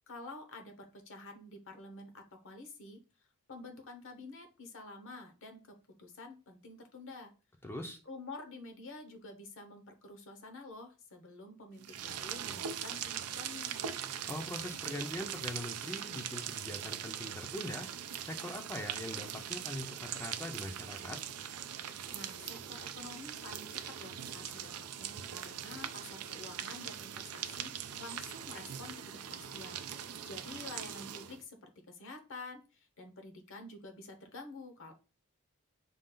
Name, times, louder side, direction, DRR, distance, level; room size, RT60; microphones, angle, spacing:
voice 1, 0.1-3.0 3.5-7.3 8.0-13.9 22.1-34.9, left 2 dB, 60° left, 6 dB, 1.0 m, -49 dB
voice 2, 7.6-8.0 14.2-17.9 18.2-21.2, left 1 dB, 10° left, 3 dB, 0.5 m, -42 dB
sound 1, 11.8-31.4, right 9 dB, 80° right, 0.5 m, -41 dB
5.2 x 2.4 x 3.7 m, 0.34 s
head